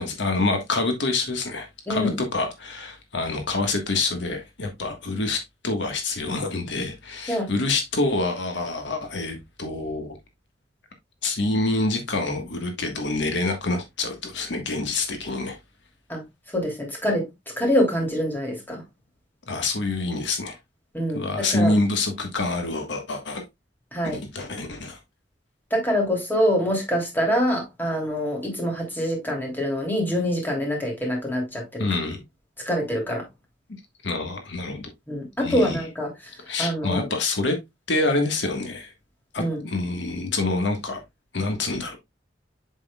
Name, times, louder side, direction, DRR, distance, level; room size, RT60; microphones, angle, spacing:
voice 1, 0.0-10.1 11.2-15.6 19.5-20.6 21.1-23.4 24.0-25.0 31.8-32.2 34.0-34.9 35.4-35.8 36.5-37.6 37.9-38.9 39.3-41.0 41.3-42.0, left 2 dB, 80° left, 1.5 m, -26 dB
voice 2, 1.9-2.2 7.3-7.5 16.1-16.2 16.5-17.3 17.6-18.8 20.9-21.7 23.9-24.2 25.7-31.9 32.6-33.2 35.1-36.3 36.6-37.1 39.4-39.7, equal, 10° left, 3.0 m, -25 dB
7.6 x 6.3 x 2.3 m
head